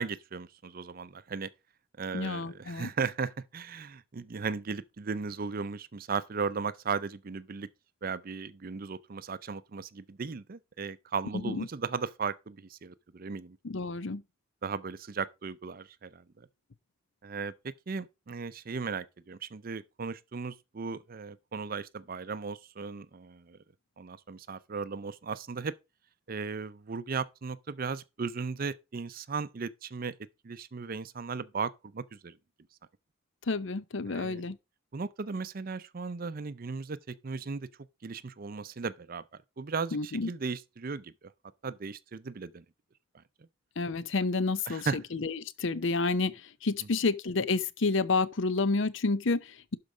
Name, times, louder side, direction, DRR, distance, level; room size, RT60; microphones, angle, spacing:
voice 1, 0.0-1.5 2.0-7.7 8.0-13.6 14.6-16.2 17.2-23.6 24.0-25.7 26.3-30.1 30.4-32.4 34.1-34.4 34.9-37.7 38.0-39.2 39.6-41.1 41.6-42.6 44.7-45.0, right 5 dB, 45° right, 0.5 m, -36 dB
voice 2, 2.1-2.9 11.3-11.7 13.6-14.2 33.5-34.6 39.9-40.3 43.8-49.8, left 3 dB, 60° left, 0.7 m, -30 dB
12.0 x 4.7 x 5.0 m
head